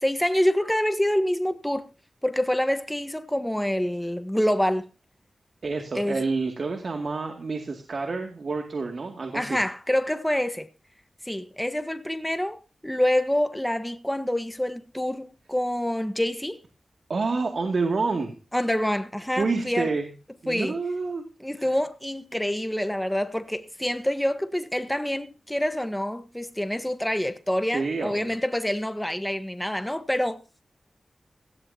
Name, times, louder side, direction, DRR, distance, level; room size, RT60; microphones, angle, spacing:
voice 1, 0.0-1.9 2.2-4.9 5.9-6.2 9.3-10.7 11.2-16.6 18.5-19.9 20.5-20.7 21.4-30.4, left 1 dB, 5° left, 1.3 m, -26 dB
voice 2, 5.6-9.6 17.1-18.3 19.4-20.1 20.4-21.2 21.6-21.7 27.7-28.4, right 4 dB, 70° right, 2.4 m, -28 dB
17.5 x 15.5 x 2.9 m
cardioid pair, 50°, 0 cm